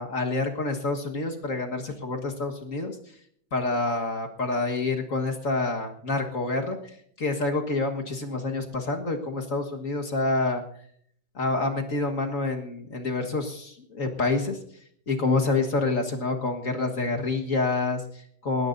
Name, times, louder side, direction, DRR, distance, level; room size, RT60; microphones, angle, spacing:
voice 1, 0.0-3.0 3.5-6.8 7.2-10.6 11.4-14.6 15.1-18.7, left 3 dB, 45° left, 2 dB, 1.8 m, -27 dB
20.5 x 18.5 x 2.7 m, 0.64 s
omnidirectional pair, 2.1 m